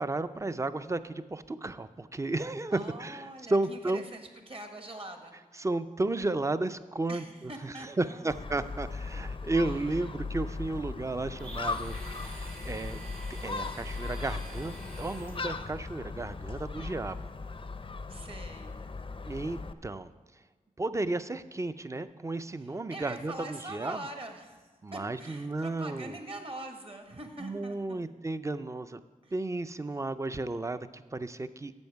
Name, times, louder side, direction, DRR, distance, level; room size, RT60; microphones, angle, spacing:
voice 1, 0.0-4.0 5.6-11.9 12.3-13.0 13.3-17.2 19.2-20.1 20.8-24.1 24.8-26.2 27.4-29.0 29.3-31.7, right 2 dB, 20° right, 12 dB, 0.4 m, -33 dB
voice 2, 2.7-5.7 7.1-8.3 9.6-10.1 16.7-16.9 18.1-18.9 22.6-24.6 24.9-28.0 29.2-29.3, right 1 dB, 40° right, 5 dB, 1.3 m, -44 dB
Gull seagull, 8.3-19.7, left 4 dB, 35° left, 0.5 m, -38 dB
Domestic sounds home sounds, 11.3-15.8, right 2 dB, 85° right, 1.8 m, -47 dB
10.5 x 7.2 x 4.7 m, 1.4 s
cardioid pair, 65°, 15 cm